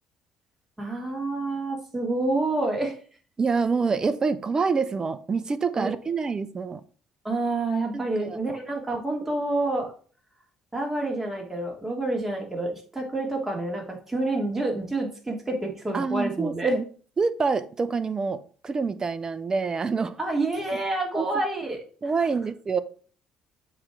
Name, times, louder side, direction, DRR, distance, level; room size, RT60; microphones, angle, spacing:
voice 1, 0.8-2.9 5.8-5.9 7.2-9.9 10.7-16.8 20.2-22.1, right 2 dB, 15° right, 0 dB, 2.9 m, -28 dB
voice 2, 3.4-6.8 7.9-8.4 8.9-9.0 15.9-16.8 17.2-20.2 21.1-21.3 22.0-22.8, right 4 dB, 35° right, 13 dB, 0.7 m, -26 dB
7.3 x 3.4 x 6.1 m, 0.43 s
hypercardioid pair, 55°, 2 cm